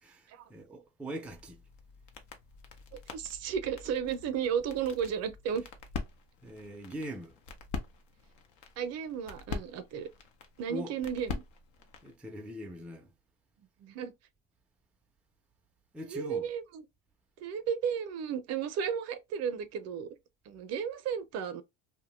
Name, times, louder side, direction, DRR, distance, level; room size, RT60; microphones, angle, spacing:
voice 1, 0.0-1.6 6.4-7.3 10.7-10.9 12.0-13.1 15.9-16.5, equal, 5° right, 0.4 m, -42 dB
sound 1, 1.3-12.2, left 5 dB, 70° left, 0.8 m, -44 dB
voice 2, 2.9-5.6 8.8-10.1 10.6-11.4 13.8-14.1 16.1-16.8 17.4-20.2 20.5-21.6, right 7 dB, 55° right, 0.5 m, -34 dB
2.6 x 2.2 x 3.0 m
cardioid pair, 110°, 30 cm